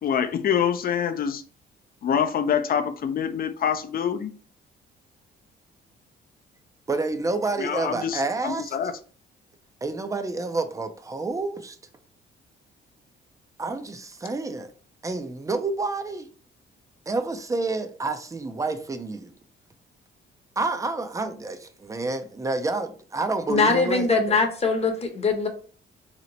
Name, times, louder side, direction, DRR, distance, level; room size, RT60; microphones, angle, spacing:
voice 1, 0.0-1.4 2.0-4.3 7.6-8.9, left 8 dB, 50° left, 0.5 m, -25 dB
voice 2, 6.9-8.8 9.8-11.8 13.6-14.7 15.0-16.3 17.1-19.3 20.6-24.1, right 3 dB, 15° right, 0.5 m, -29 dB
voice 3, 23.5-25.5, left 4 dB, 30° left, 0.9 m, -22 dB
2.9 x 2.1 x 4.0 m
cardioid pair, 90°, 20 cm